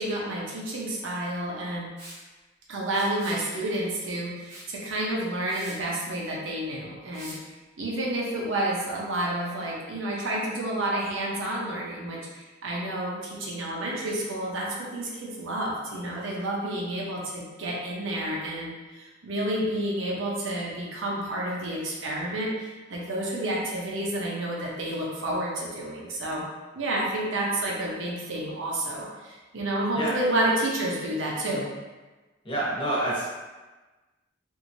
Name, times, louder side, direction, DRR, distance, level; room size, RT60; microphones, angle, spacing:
voice 1, 0.0-1.9 2.7-7.3 7.8-26.4 26.7-31.7, right 1 dB, 75° right, -3 dB, 0.7 m, -30 dB
Liquid, 2.0-2.2 2.9-3.4 4.5-4.7 5.1-5.2 5.5-5.8 7.1-7.4, right 1 dB, 35° right, 1.0 m, -44 dB
voice 2, 32.4-33.3, right 1 dB, 25° left, -8 dB, 1.0 m, -27 dB
3.0 x 2.6 x 2.6 m, 1.2 s
head